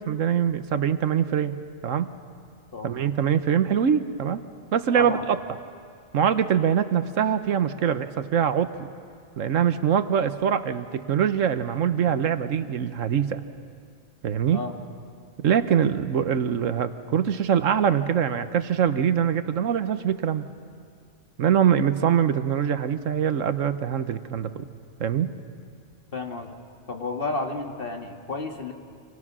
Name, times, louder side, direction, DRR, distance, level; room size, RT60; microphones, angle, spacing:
voice 1, 0.0-1.5 1.8-2.1 2.8-4.4 4.7-5.4 6.1-8.7 9.4-13.4 14.2-14.6 15.4-20.5 21.4-24.6 25.0-25.3, right 8 dB, 75° right, 11 dB, 1.3 m, -23 dB
voice 2, 2.7-3.1 5.0-5.2 14.5-14.7 26.1-26.5 26.9-28.7, left 3 dB, 45° left, 3 dB, 2.0 m, -31 dB
28.0 x 26.5 x 6.2 m, 2.2 s
omnidirectional pair, 1.3 m